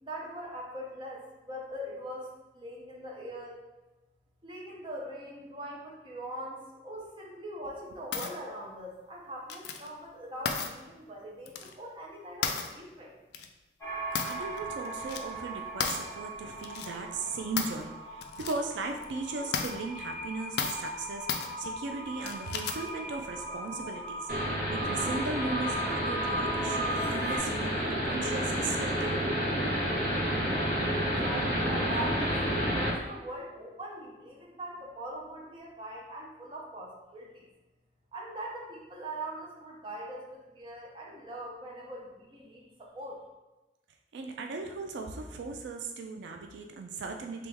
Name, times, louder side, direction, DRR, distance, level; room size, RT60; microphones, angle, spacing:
voice 1, 0.0-3.6 4.4-13.1 31.2-37.5 38.1-43.2, right 1 dB, 25° right, -2 dB, 0.6 m, -41 dB
sound 1, 8.1-8.3 9.5-9.9 10.4-10.7 11.4-11.7 12.4-12.7 13.3-13.5 14.1-14.6 14.8-15.2 15.8-16.0 16.6-16.9 17.6-17.8 18.2-18.6 19.0-19.1 19.5-19.7 20.6-20.9 21.3-21.5 22.2-22.9, left 6 dB, 65° left, 0.3 m, -33 dB
sound 2, 13.8-27.4, right 1 dB, 15° left, 1.3 m, -38 dB
voice 2, 14.2-24.3 24.7-29.3 44.1-47.5, right 3 dB, 85° right, 3 dB, 0.4 m, -37 dB
sound 3, 24.3-32.9, equal, 45° right, 1.1 m, -30 dB
3.3 x 3.0 x 3.4 m, 1.1 s
head